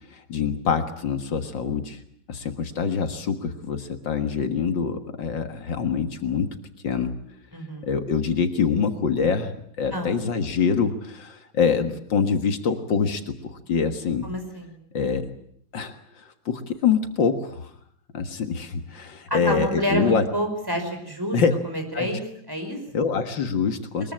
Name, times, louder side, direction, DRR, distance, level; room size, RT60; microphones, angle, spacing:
voice 1, 0.1-2.0 2.3-6.5 6.8-7.1 7.8-9.5 9.8-14.3 14.9-15.3 15.7-17.7 18.1-20.2 21.3-21.5 21.9-22.1 22.9-24.1, left 6 dB, 75° left, 7 dB, 2.3 m, -25 dB
voice 2, 7.5-7.9 9.9-10.2 14.2-14.8 19.3-21.4 21.6-22.2 22.5-23.1, equal, 10° right, 4 dB, 5.5 m, -29 dB
22.5 x 22.0 x 8.9 m, 0.67 s
omnidirectional pair, 2.1 m